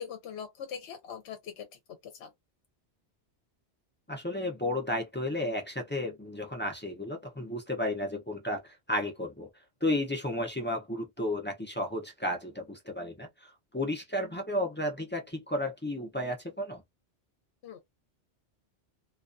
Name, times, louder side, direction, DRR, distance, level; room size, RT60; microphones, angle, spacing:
voice 1, 0.0-1.7 2.0-2.3 17.6-17.8, left 7 dB, 75° left, 0.8 m, -41 dB
voice 2, 4.1-9.5 9.8-16.8, left 1 dB, 15° left, 0.4 m, -33 dB
2.3 x 2.2 x 2.5 m
omnidirectional pair, 1.2 m